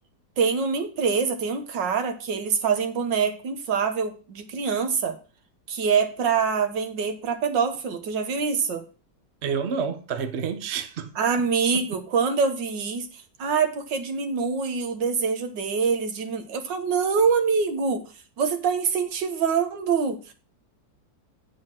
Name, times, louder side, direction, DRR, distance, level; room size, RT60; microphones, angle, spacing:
voice 1, 0.4-5.2 5.7-8.8 11.2-13.1 13.4-18.0 18.4-20.3, right 5 dB, 70° right, 1.7 m, -25 dB
voice 2, 9.4-11.1 11.7-11.8, right 6 dB, 50° right, 0.8 m, -29 dB
8.1 x 4.8 x 6.0 m
omnidirectional pair, 2.0 m